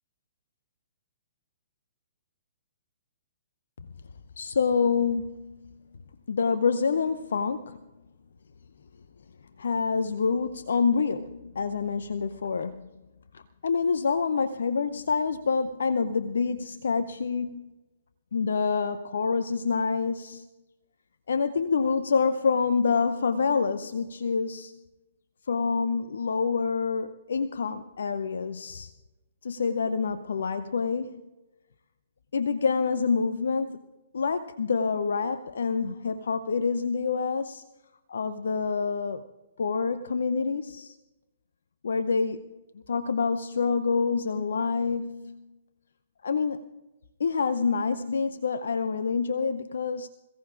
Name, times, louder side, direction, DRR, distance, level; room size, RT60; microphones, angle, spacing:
voice 1, 4.4-5.7 6.3-7.8 9.6-12.9 13.3-17.7 18.3-20.5 21.3-24.8 25.5-28.9 29.4-31.2 32.3-33.8 34.1-37.6 38.1-39.3 39.6-41.0 41.8-42.5 42.9-45.5 46.2-46.7 47.2-50.1, left 5 dB, 65° left, 11 dB, 0.6 m, -27 dB
27.0 x 16.5 x 2.5 m, 1.1 s
figure-of-eight pair, 120°, 0 cm